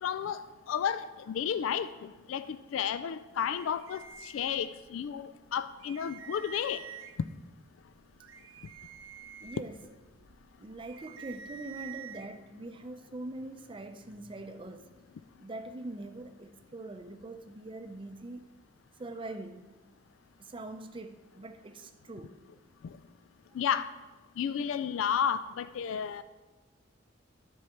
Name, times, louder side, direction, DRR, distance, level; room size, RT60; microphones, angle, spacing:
voice 1, 0.0-1.9 2.3-6.8 23.6-23.9 24.4-26.2, left 8 dB, 85° left, 0.3 m, -32 dB
sound 1, 3.5-5.1 5.5-5.6 5.8-7.3 7.9-12.3, right 7 dB, 85° right, 0.6 m, -48 dB
voice 2, 9.4-9.8 10.6-14.9 15.4-18.5 19.0-19.7 20.4-22.4, right 2 dB, 25° right, 0.5 m, -43 dB
10.5 x 4.7 x 5.7 m
head